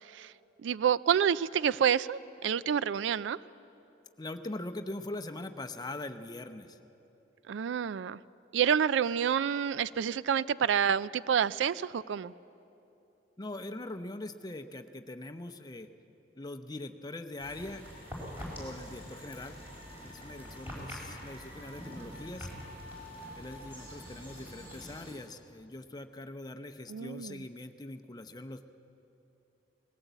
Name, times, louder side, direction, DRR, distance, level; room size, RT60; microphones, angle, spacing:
voice 1, 0.6-3.4 7.5-8.2 8.5-12.3 26.9-27.4, right 8 dB, 80° right, 18 dB, 0.4 m, -28 dB
voice 2, 4.2-6.8 13.4-15.9 16.4-17.8 18.5-19.6 20.0-22.5 23.3-28.7, left 2 dB, 20° left, 6 dB, 0.7 m, -42 dB
sound 1, 17.4-25.1, equal, 10° right, 5.1 m, -45 dB
19.5 x 17.0 x 8.1 m, 2.9 s
head